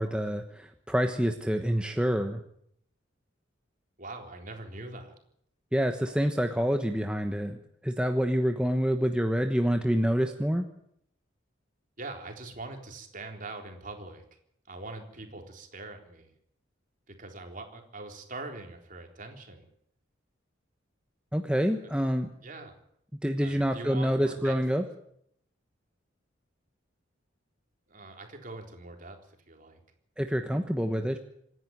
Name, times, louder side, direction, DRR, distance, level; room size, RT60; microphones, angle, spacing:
voice 1, 0.0-2.4 5.7-7.6 7.8-10.6 21.3-22.3 23.2-24.8 30.2-31.2, equal, 5° right, 5 dB, 1.1 m, -27 dB
voice 2, 4.0-5.1 12.0-14.2 14.7-16.3 17.1-19.7 21.8-21.9 22.4-22.8 23.4-24.6 27.9-29.8, right 2 dB, 45° right, 3 dB, 3.9 m, -43 dB
26.5 x 11.0 x 9.4 m, 0.70 s
head